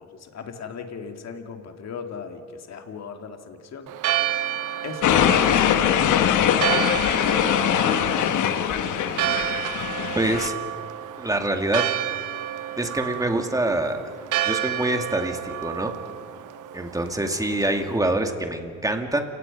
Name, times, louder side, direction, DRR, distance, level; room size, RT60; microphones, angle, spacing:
voice 1, 0.0-3.9 4.8-6.7 8.0-9.4, left 6 dB, 60° left, 5 dB, 2.4 m, -36 dB
Church bell, 3.9-18.0, right 11 dB, 85° right, 1.0 m, -30 dB
sound 1, 5.0-10.5, left 9 dB, 80° left, 1.2 m, -22 dB
voice 2, 10.2-10.6 11.2-11.9 12.8-14.0 14.4-16.0 16.7-19.2, right 1 dB, 10° right, 5 dB, 2.4 m, -25 dB
29.5 x 18.0 x 5.4 m, 2.3 s
cardioid pair, 90°, 30 cm